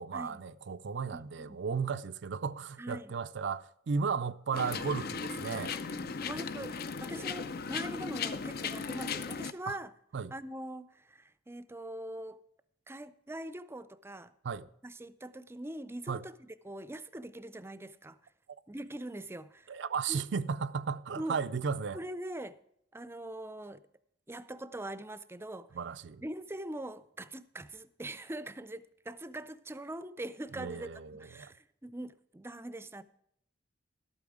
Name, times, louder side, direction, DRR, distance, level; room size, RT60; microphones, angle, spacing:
voice 1, 0.0-5.7 9.7-9.8 10.1-10.3 14.4-14.7 16.1-16.2 19.7-22.0 25.8-26.2 30.5-31.5, right 5 dB, 70° right, 0.4 m, -35 dB
voice 2, 1.1-1.6 2.8-3.2 5.9-9.9 10.3-12.4 12.9-14.3 14.8-18.3 18.7-19.8 20.1-20.2 21.2-21.4 21.9-22.6 22.9-23.8 24.3-25.7 26.2-33.0, right 1 dB, 15° right, 0.5 m, -42 dB
sound 1, 4.5-9.5, left 5 dB, 55° left, 0.6 m, -37 dB
12.0 x 8.6 x 4.9 m
head